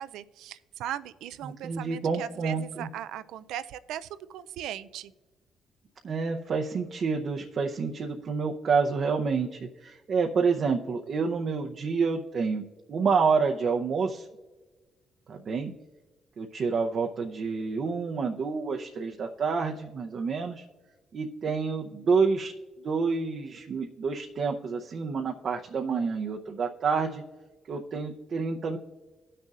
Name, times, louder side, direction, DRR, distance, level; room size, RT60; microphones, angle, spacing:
voice 1, 0.0-5.1, right 11 dB, 90° right, 14 dB, 0.4 m, -38 dB
voice 2, 1.4-2.9 6.0-14.3 15.3-15.7 16.4-20.6 21.1-22.5 22.8-27.2 27.7-28.8, right 5 dB, 55° right, 2 dB, 0.7 m, -28 dB
16.5 x 6.6 x 2.5 m, 1.3 s
cardioid pair, 90°, 0 cm